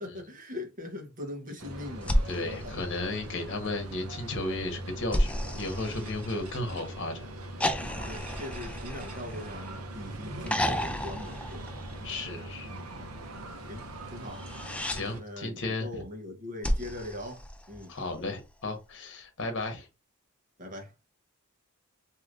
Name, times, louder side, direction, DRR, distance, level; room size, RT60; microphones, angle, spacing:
voice 1, 0.0-2.8 8.1-11.7 12.7-12.9 13.6-14.5 15.2-17.9 20.6-20.9, left 1 dB, 40° right, 1.0 m, -41 dB
sound 1, 1.6-15.2, right 1 dB, 90° right, 0.8 m, -41 dB
sound 2, 2.0-3.6 5.1-6.8 7.6-9.9 10.5-12.3 14.3-15.0 16.6-18.1 19.6-19.7, equal, 5° left, 0.3 m, -32 dB
voice 2, 2.2-7.3 12.0-12.7 14.8-16.0 17.9-19.9, left 2 dB, 60° left, 1.0 m, -34 dB
3.2 x 2.7 x 2.5 m
head